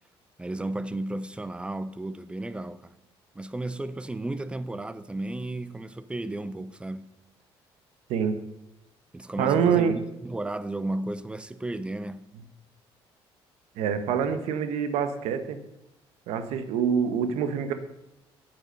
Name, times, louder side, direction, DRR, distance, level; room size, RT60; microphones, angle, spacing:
voice 1, 0.4-2.9 3.3-7.1 9.1-12.2, right 2 dB, 10° right, 0.5 m, -33 dB
voice 2, 9.4-10.0 13.8-15.6 16.3-17.7, right 7 dB, 80° right, 1.0 m, -25 dB
8.8 x 7.8 x 5.3 m
cardioid pair, 100°, 10 cm